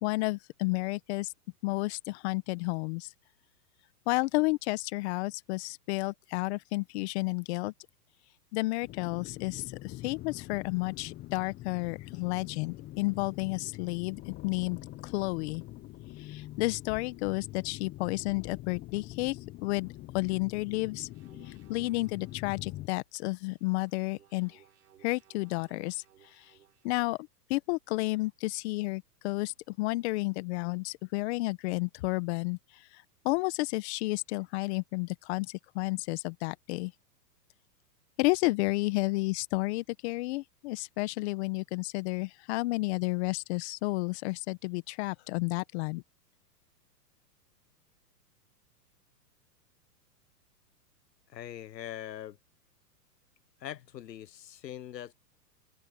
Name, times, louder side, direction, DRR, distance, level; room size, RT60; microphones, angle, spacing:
voice 1, 0.0-1.3 1.6-3.1 4.1-7.7 8.5-14.8 15.0-15.6 16.2-21.1 21.4-24.6 25.0-26.0 26.3-26.4 26.8-27.2 27.5-36.9 38.2-46.0, left 23 dB, 40° left, 1.3 m, -31 dB
sound 1, 8.8-22.9, left 16 dB, 20° left, 0.8 m, -44 dB
sound 2, 21.1-22.7 23.5-27.1, right 11 dB, 75° right, 6.7 m, -62 dB
voice 2, 51.3-52.4 53.6-55.1, left 11 dB, 90° left, 1.0 m, -42 dB
hypercardioid pair, 135°, 49 cm